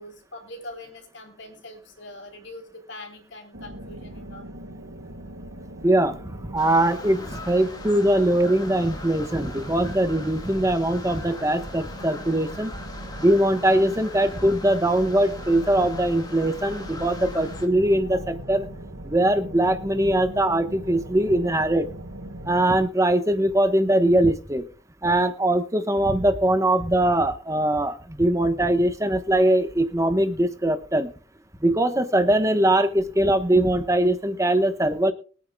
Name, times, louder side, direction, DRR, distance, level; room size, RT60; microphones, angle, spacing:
voice 1, 0.0-4.5 18.1-18.2, left 1 dB, 60° left, 3 dB, 3.6 m, -42 dB
sound 1, 3.5-22.6, right 1 dB, 85° right, 1.6 m, -40 dB
voice 2, 5.8-6.2 6.5-12.7 13.2-18.7 19.0-21.9 22.5-24.6 25.0-31.1 31.6-35.1, right 1 dB, 15° right, 9 dB, 1.1 m, -21 dB
sound 2, 6.6-17.7, left 2 dB, 20° left, 1.7 m, -41 dB
23.0 x 9.2 x 2.3 m, 0.39 s
head